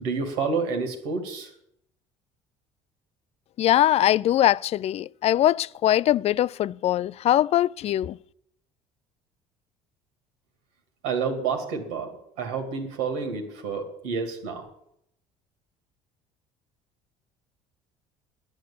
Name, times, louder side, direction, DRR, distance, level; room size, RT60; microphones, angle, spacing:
voice 1, 0.0-1.5 11.0-14.7, right 5 dB, 85° right, 2.3 m, -29 dB
voice 2, 3.6-8.2, left 12 dB, 45° left, 0.4 m, -22 dB
10.5 x 8.2 x 8.4 m
supercardioid pair, 80°, 14 cm